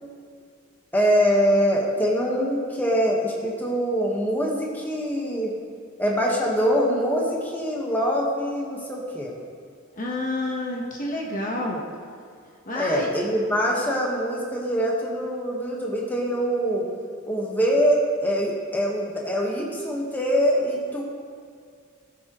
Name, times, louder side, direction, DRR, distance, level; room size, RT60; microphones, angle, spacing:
voice 1, 0.9-5.6 6.0-9.3 12.7-16.9 17.3-21.0, equal, 10° left, -3 dB, 1.4 m, -24 dB
voice 2, 9.9-11.8 12.7-13.1, left 1 dB, 35° left, -1 dB, 1.2 m, -29 dB
18.0 x 7.3 x 3.1 m, 2.3 s
head